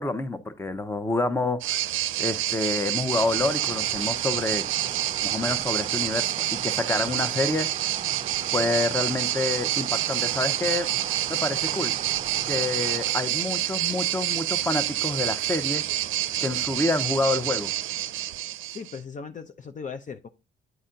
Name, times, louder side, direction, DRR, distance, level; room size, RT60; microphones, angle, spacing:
voice 1, 0.0-1.8 2.2-4.6 5.2-6.2 6.5-7.9 8.5-10.9 11.3-11.9 12.5-15.8 16.4-17.7, left 2 dB, 10° left, 0.9 m, -28 dB
sound 1, 1.6-19.0, right 14 dB, 85° right, 0.5 m, -28 dB
sound 2, 3.1-13.1, right 6 dB, 35° right, 0.5 m, -39 dB
voice 2, 18.6-20.3, left 5 dB, 40° left, 0.6 m, -38 dB
9.3 x 4.2 x 3.8 m
cardioid pair, 90°, 20 cm